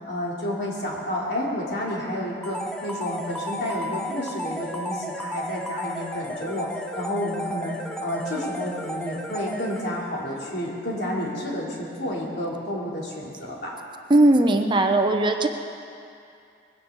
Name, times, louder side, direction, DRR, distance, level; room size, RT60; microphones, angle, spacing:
voice 1, 0.1-6.7 6.9-13.7, left 1 dB, 65° left, -4 dB, 3.6 m, -30 dB
sound 1, 2.4-10.2, equal, 5° left, 0.9 m, -34 dB
voice 2, 14.1-15.5, right 2 dB, 25° right, 4 dB, 0.8 m, -18 dB
21.5 x 16.5 x 4.1 m, 2.5 s
head